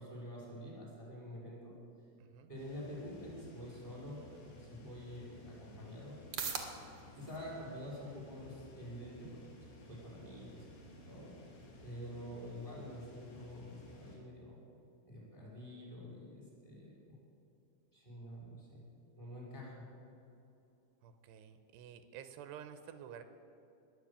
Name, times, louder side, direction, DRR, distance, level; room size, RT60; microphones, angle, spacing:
voice 1, 0.0-1.7 2.5-6.2 7.1-9.4 9.8-10.6 11.1-11.3 11.8-14.6 15.0-17.1 17.9-18.8 19.2-19.8, equal, 10° left, -5 dB, 5.0 m, -47 dB
voice 2, 2.2-2.5 21.0-23.2, right 9 dB, 85° right, 9 dB, 2.9 m, -51 dB
sound 1, 2.6-14.2, left 2 dB, 75° left, 4.6 m, -56 dB
sound 2, 5.8-21.8, right 6 dB, 55° right, 1.8 m, -53 dB
21.0 x 7.8 x 8.6 m, 2.7 s
omnidirectional pair, 4.8 m